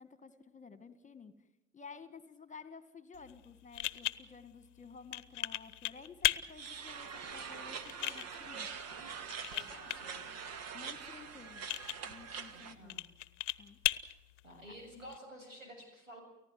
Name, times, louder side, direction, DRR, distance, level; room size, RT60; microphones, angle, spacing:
voice 1, 0.0-1.3 1.7-8.7 10.7-11.6 12.1-13.0 13.6-13.8, left 5 dB, 20° left, 12 dB, 2.0 m, -53 dB
sound 1, 3.1-15.2, left 15 dB, 65° left, 0.9 m, -39 dB
sound 2, 6.5-12.7, right 6 dB, 40° right, 1.9 m, -44 dB
voice 2, 9.5-10.2 12.5-13.0 14.4-16.2, equal, 85° right, 4 dB, 7.3 m, -51 dB
30.0 x 15.0 x 7.7 m, 0.90 s
figure-of-eight pair, 65°, 38 cm